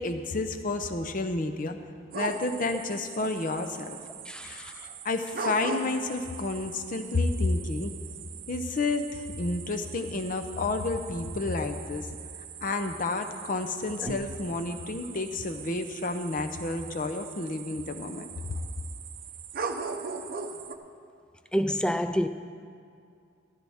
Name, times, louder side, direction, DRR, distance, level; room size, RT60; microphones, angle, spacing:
voice 1, 0.0-1.8 2.1-4.0 4.4-7.9 8.5-12.1 12.6-18.3, left 3 dB, 45° left, 7 dB, 0.6 m, -30 dB
sound 1, 2.1-20.7, right 5 dB, 50° right, 0.7 m, -40 dB
voice 2, 4.3-4.7 14.0-14.1 21.5-22.3, equal, 5° left, 9 dB, 0.3 m, -28 dB
14.5 x 13.5 x 3.5 m, 2.4 s
head